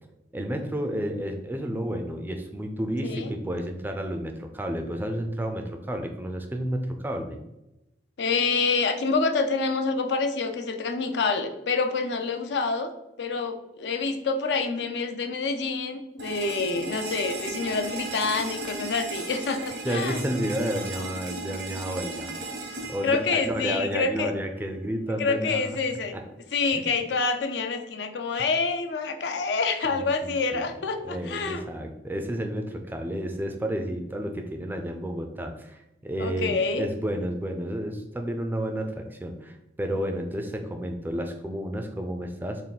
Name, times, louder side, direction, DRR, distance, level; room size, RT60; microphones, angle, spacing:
voice 1, 0.3-7.4 19.8-22.4 22.9-25.8 26.1-26.2 26.7-26.8 29.8-30.7 31.0-42.7, equal, 10° right, 5 dB, 0.3 m, -31 dB
voice 2, 8.2-12.9 13.2-20.2 23.0-24.3 25.2-26.1 26.5-31.6 36.2-36.8, left 4 dB, 80° left, 6 dB, 0.4 m, -27 dB
sound 1, 16.2-24.2, right 3 dB, 80° right, 0.9 m, -36 dB
3.6 x 2.4 x 3.9 m, 0.93 s
head